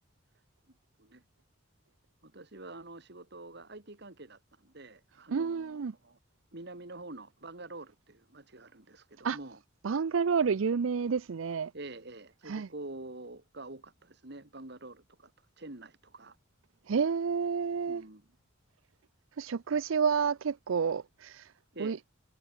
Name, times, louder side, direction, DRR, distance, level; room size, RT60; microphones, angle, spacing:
voice 1, 2.2-6.2 6.5-9.6 11.7-15.3 15.6-16.4 17.9-18.3 21.7-22.0, right 2 dB, 60° right, 2.6 m, -46 dB
voice 2, 5.3-5.9 9.2-9.4 9.8-11.7 12.4-12.7 16.9-18.0 19.4-21.5 21.8-22.0, right 6 dB, 85° right, 0.5 m, -29 dB
head